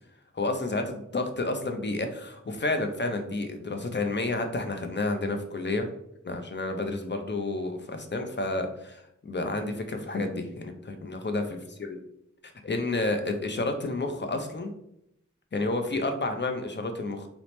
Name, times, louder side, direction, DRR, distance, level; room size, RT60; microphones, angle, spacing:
voice 1, 0.3-5.9 6.2-11.4 11.9-12.0 12.6-14.7 15.5-17.3, left 2 dB, 35° left, 5 dB, 0.4 m, -30 dB
2.9 x 2.0 x 3.0 m, 0.75 s
wide cardioid pair, 50°, 31 cm